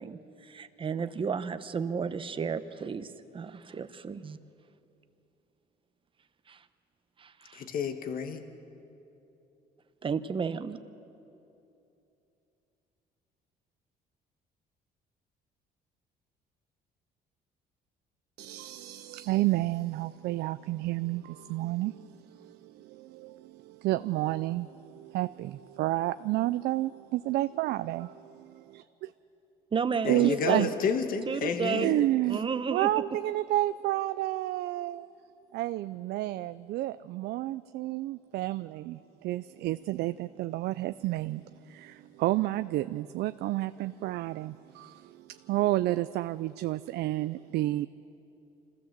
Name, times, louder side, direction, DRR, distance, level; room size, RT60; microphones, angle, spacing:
voice 1, 0.0-4.4 6.5-6.6 7.2-7.6 10.0-10.8 29.7-30.7 31.3-31.9 32.3-32.9, right 6 dB, 30° right, 10 dB, 0.9 m, -32 dB
voice 2, 7.5-8.4 30.0-32.1, left 6 dB, 55° left, 7 dB, 1.6 m, -31 dB
voice 3, 18.4-29.1 30.1-30.7 31.8-35.1 35.5-47.9, right 16 dB, 75° right, 12 dB, 0.4 m, -31 dB
25.5 x 15.5 x 7.4 m, 2.9 s
cardioid pair, 110°, 17 cm